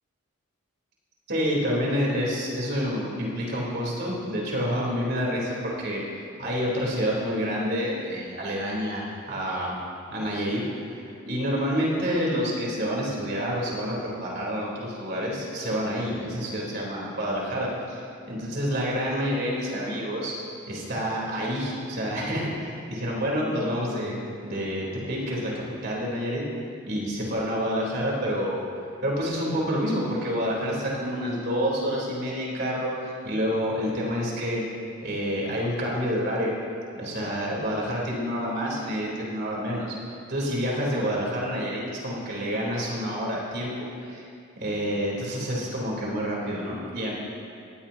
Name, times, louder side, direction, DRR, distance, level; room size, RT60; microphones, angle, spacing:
voice 1, 1.3-6.0 6.4-9.7 10.1-18.0 18.3-20.3 20.7-26.4 26.9-28.6 29.0-34.6 35.0-36.6 37.0-40.0 40.3-44.3 44.6-47.1, equal, 50° right, -4 dB, 3.7 m, -28 dB
19.5 x 15.5 x 2.9 m, 2.4 s
head